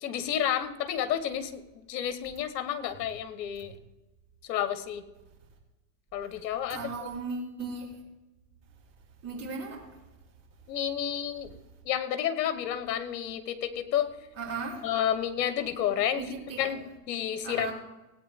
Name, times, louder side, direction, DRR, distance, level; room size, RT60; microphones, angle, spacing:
voice 1, 0.0-3.7 4.4-5.0 6.1-7.1 10.7-11.5 11.8-14.1 14.8-16.2 16.6-16.8 17.1-17.7, left 10 dB, 75° left, 11 dB, 1.6 m, -30 dB
voice 2, 6.7-8.0 9.2-9.8 14.4-14.9 16.2-16.7 17.4-17.7, right 4 dB, 30° right, -4 dB, 4.1 m, -36 dB
17.5 x 9.3 x 3.7 m, 1.1 s
supercardioid pair, 125°, 50 cm